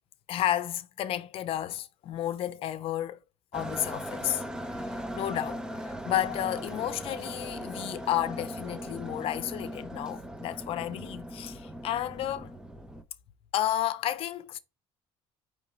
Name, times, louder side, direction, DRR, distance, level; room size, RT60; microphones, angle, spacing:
voice 1, 0.3-3.2 3.5-4.4 4.7-12.6 13.5-14.6, left 12 dB, 55° left, 0.7 m, -32 dB
sound 1, 3.5-13.0, equal, 5° right, 0.7 m, -39 dB
5.0 x 3.2 x 3.2 m
cardioid pair, 130°, 11 cm